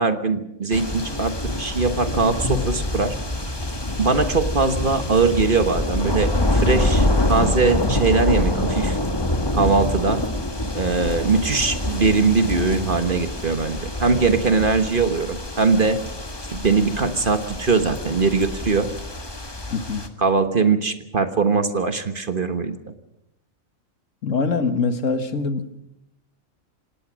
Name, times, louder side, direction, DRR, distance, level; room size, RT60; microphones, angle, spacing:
voice 1, 0.0-3.2 4.0-9.0 9.5-10.3 10.7-16.0 16.5-18.9 20.2-22.8, right 4 dB, 40° right, 9 dB, 1.4 m, -21 dB
sound 1, 0.7-20.1, left 1 dB, 20° left, 1.6 m, -25 dB
voice 2, 19.7-20.0 24.2-25.8, left 4 dB, 65° left, 10 dB, 1.8 m, -23 dB
26.5 x 18.5 x 6.3 m, 0.83 s
omnidirectional pair, 1.4 m